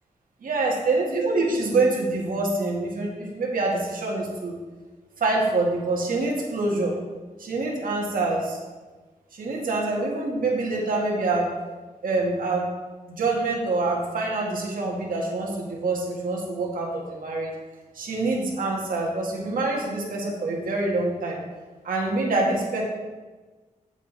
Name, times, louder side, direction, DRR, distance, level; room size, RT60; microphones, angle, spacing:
voice 1, 0.4-4.5 5.2-7.0 7.4-8.6 9.3-11.5 12.0-12.6 13.1-17.5 17.9-21.4 21.8-22.8, right 2 dB, 80° right, -2 dB, 2.0 m, -25 dB
8.7 x 7.3 x 4.1 m, 1.3 s
wide cardioid pair, 85°, 14 cm